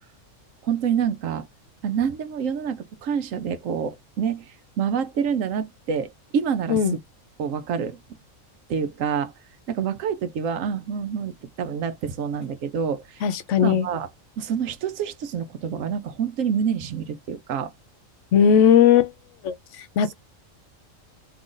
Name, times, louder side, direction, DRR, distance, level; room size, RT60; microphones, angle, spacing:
voice 1, 0.6-1.5 1.8-4.5 4.8-7.0 7.4-8.0 8.7-9.3 9.7-13.2 13.6-14.1 14.4-17.7, right 7 dB, 85° right, 1.0 m, -27 dB
voice 2, 13.2-13.9 18.3-19.1 19.4-19.5 20.0-20.1, left 8 dB, 70° left, 0.9 m, -17 dB
2.9 x 2.5 x 3.7 m
omnidirectional pair, 1.4 m